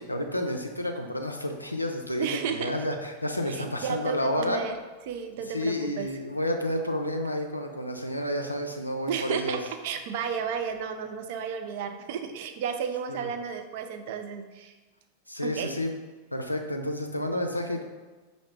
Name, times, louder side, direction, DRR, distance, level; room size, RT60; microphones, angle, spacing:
voice 1, 0.1-4.6 5.5-9.6 13.1-13.3 15.3-15.9 16.3-17.8, left 1 dB, 85° left, 3 dB, 0.4 m, -30 dB
voice 2, 2.2-2.7 3.5-4.7 5.1-6.1 9.1-14.8 15.4-15.8, right 7 dB, 50° right, 7 dB, 0.4 m, -33 dB
5.6 x 2.6 x 3.3 m, 1.3 s
figure-of-eight pair, 90°, 0 cm